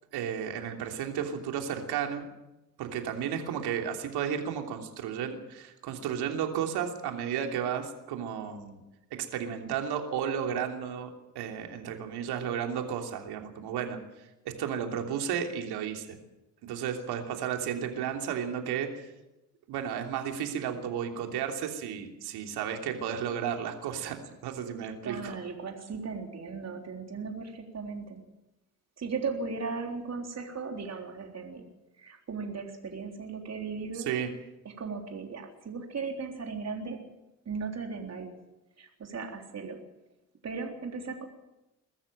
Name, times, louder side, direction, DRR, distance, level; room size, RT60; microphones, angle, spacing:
voice 1, 0.1-2.3 2.8-8.8 9.2-11.1 11.3-14.0 14.6-16.2 16.6-19.1 19.7-24.2 24.4-25.4 33.9-34.3, right 8 dB, 65° right, 4 dB, 3.2 m, -33 dB
voice 2, 25.0-28.2 29.0-31.6 32.0-34.1 34.8-37.0 37.5-38.3 38.8-39.8 40.4-41.3, right 4 dB, 35° right, 3 dB, 3.8 m, -37 dB
22.5 x 13.5 x 8.9 m, 0.98 s
hypercardioid pair, 55°, 42 cm